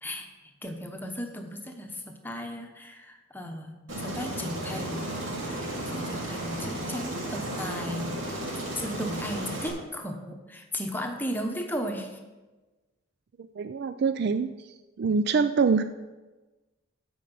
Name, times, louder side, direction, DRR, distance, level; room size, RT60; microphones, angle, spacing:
voice 1, 0.0-5.1 5.4-12.2, equal, 10° left, 3 dB, 1.0 m, -36 dB
Aircraft, 3.9-9.7, right 1 dB, 70° right, 3.2 m, -34 dB
voice 2, 13.6-14.5 15.0-15.8, right 5 dB, 55° right, 10 dB, 0.3 m, -24 dB
15.5 x 5.3 x 5.5 m, 1.2 s
head